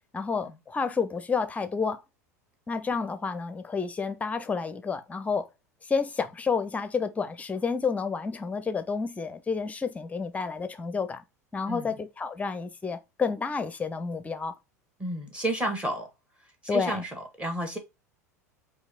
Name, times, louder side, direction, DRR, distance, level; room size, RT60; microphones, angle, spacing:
voice 1, 0.1-2.0 2.7-5.5 5.8-11.2 11.5-14.5 16.7-17.0, left 5 dB, 15° left, 0.6 m, -30 dB
voice 2, 15.0-16.1 16.7-17.8, right 1 dB, 10° right, 1.5 m, -31 dB
4.6 x 2.8 x 2.5 m
figure-of-eight pair, 80°, 9 cm